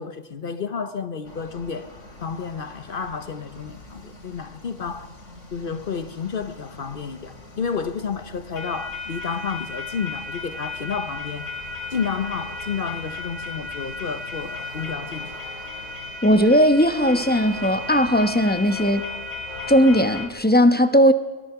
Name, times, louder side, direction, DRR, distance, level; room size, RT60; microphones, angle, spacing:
voice 1, 0.0-1.9 2.2-5.1 5.5-11.6 11.9-15.4, left 6 dB, 50° left, 0.9 m, -31 dB
sound 1, 1.3-20.3, left 3 dB, 90° left, 3.0 m, -36 dB
voice 2, 16.2-19.0 19.7-21.1, equal, 10° left, 0.9 m, -17 dB
24.0 x 21.0 x 5.8 m
omnidirectional pair, 1.3 m